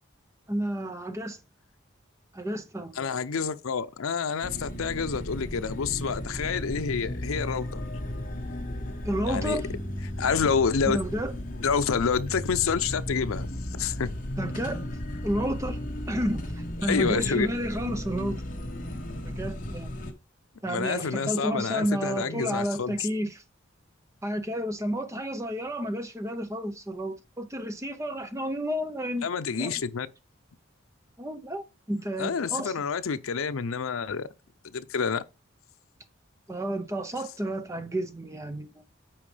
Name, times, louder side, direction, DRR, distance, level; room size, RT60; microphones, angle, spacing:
voice 1, 0.5-1.4 2.3-3.1 9.0-9.7 10.9-11.3 14.4-14.8 15.2-15.8 16.1-18.4 19.2-19.9 20.6-23.4 24.2-29.2 29.6-29.7 31.2-32.7 36.5-38.7, equal, 15° right, 0.7 m, -31 dB
voice 2, 3.0-7.8 9.2-9.6 10.2-11.0 11.6-13.5 13.7-14.1 16.9-17.5 20.7-23.1 29.2-30.1 32.2-34.3 34.7-35.2, left 6 dB, 85° left, 0.6 m, -28 dB
sound 1, 4.4-20.1, left 1 dB, 40° left, 1.3 m, -35 dB
8.8 x 4.8 x 3.3 m
head